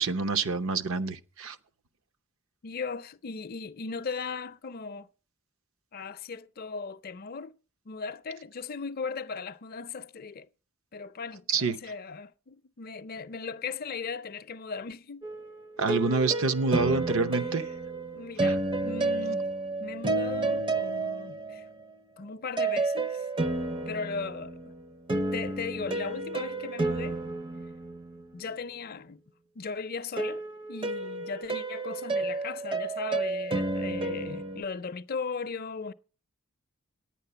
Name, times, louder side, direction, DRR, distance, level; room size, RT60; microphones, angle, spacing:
voice 1, 0.0-1.6 11.5-11.8 15.8-17.6 18.4-18.6, right 4 dB, 65° right, 0.7 m, -27 dB
voice 2, 2.6-5.1 5.9-7.5 7.9-10.5 10.9-15.3 18.1-19.5 19.8-21.7 22.2-23.3 23.9-24.7 25.3-27.2 28.3-29.2 29.6-30.4 30.7-35.9, left 5 dB, 40° left, 0.5 m, -37 dB
sound 1, 15.2-21.8 22.6-28.5 30.2-34.6, right 3 dB, 25° right, 0.5 m, -31 dB
9.8 x 9.4 x 6.8 m
head